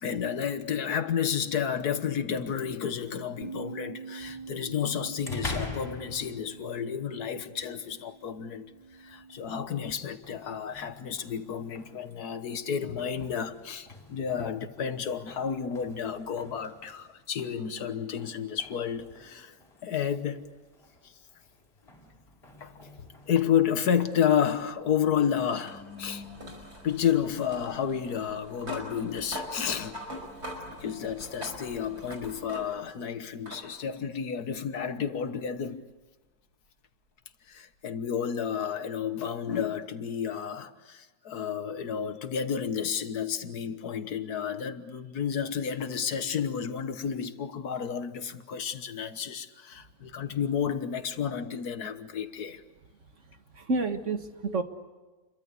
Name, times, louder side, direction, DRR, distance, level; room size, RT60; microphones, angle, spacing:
voice 1, 0.0-8.7 9.0-19.5 19.8-20.5 21.0-21.1 22.6-22.7 23.3-26.2 26.8-30.0 30.8-35.8 37.5-52.6 54.5-54.6, left 8 dB, 80° left, 1.8 m, -31 dB
Bass guitar, 3.4-9.7, right 4 dB, 25° right, 0.7 m, -45 dB
sound 1, 4.2-24.0, left 2 dB, 40° left, 4.7 m, -46 dB
sound 2, 24.1-33.0 33.5-33.7 35.0-35.1 38.0-38.1, left 1 dB, 80° right, 6.0 m, -43 dB
voice 2, 53.5-54.6, right 3 dB, 50° right, 1.8 m, -29 dB
29.0 x 23.0 x 8.3 m
omnidirectional pair, 1.6 m